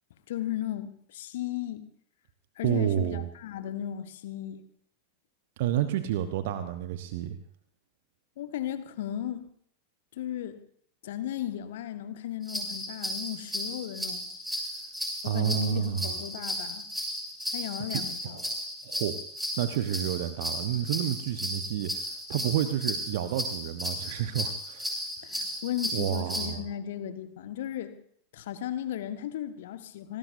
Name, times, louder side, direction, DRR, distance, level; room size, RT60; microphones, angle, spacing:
voice 1, 0.3-1.9 2.6-4.6 8.4-9.5 10.1-10.6 11.0-14.3 15.2-16.9 17.5-18.4 25.2-27.9 28.3-30.2, left 11 dB, 55° left, 10 dB, 1.6 m, -35 dB
voice 2, 2.6-3.3 5.6-7.4 15.2-16.2 17.9-19.2 19.6-25.0 25.4-25.5 25.9-26.7, right 11 dB, 55° right, 11 dB, 1.1 m, -30 dB
sound 1, 12.4-26.5, equal, 5° right, 7.1 m, -35 dB
27.5 x 19.5 x 2.7 m, 0.63 s
figure-of-eight pair, 90°, 0 cm